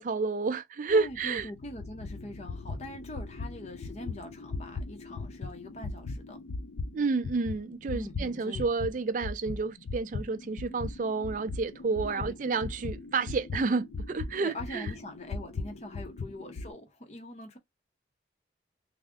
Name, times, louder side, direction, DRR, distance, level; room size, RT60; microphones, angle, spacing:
voice 1, 0.0-1.5 6.9-14.9, right 4 dB, 40° right, 0.4 m, -30 dB
sound 1, 0.9-8.9 9.2-16.7, left 3 dB, 80° left, 0.5 m, -39 dB
voice 2, 0.9-6.4 7.9-8.7 12.0-12.5 14.4-17.6, left 1 dB, 35° left, 0.6 m, -43 dB
3.5 x 2.0 x 3.5 m
head